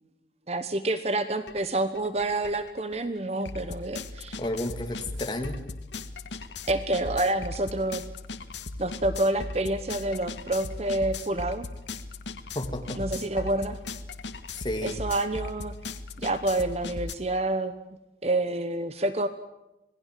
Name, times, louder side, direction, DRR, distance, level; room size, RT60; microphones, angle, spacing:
voice 1, 0.5-4.4 6.7-8.1 8.8-11.7 13.0-13.8 14.8-15.7 16.2-17.7 18.2-19.3, right 2 dB, 35° right, 11 dB, 1.1 m, -28 dB
sound 1, 1.5-1.6 1.9-17.1, left 3 dB, 90° left, 1.6 m, -38 dB
voice 2, 4.4-5.6 12.5-13.0 14.5-15.0, left 1 dB, 25° left, 5 dB, 2.8 m, -32 dB
27.5 x 19.0 x 7.7 m, 0.94 s
head